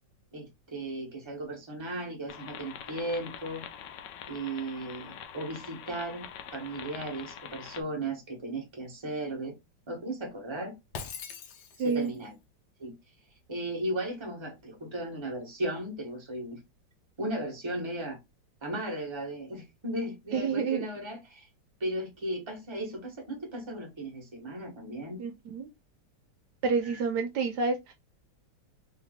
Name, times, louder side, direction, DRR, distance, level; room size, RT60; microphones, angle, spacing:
voice 1, 0.3-3.6 4.3-6.2 6.5-9.5 9.9-10.8 11.8-12.3 12.8-12.9 13.5-16.6 17.2-18.2 18.6-21.5 21.8-25.2 26.8-27.0, right 1 dB, 15° right, 1.2 m, -36 dB
sound 1, 2.3-7.8, left 9 dB, 85° left, 1.3 m, -44 dB
Shatter, 10.9-12.2, left 5 dB, 70° left, 1.3 m, -41 dB
voice 2, 11.8-12.1 20.3-20.9 25.2-25.7 26.6-27.9, right 5 dB, 75° right, 1.2 m, -29 dB
3.4 x 2.9 x 3.6 m
omnidirectional pair, 1.9 m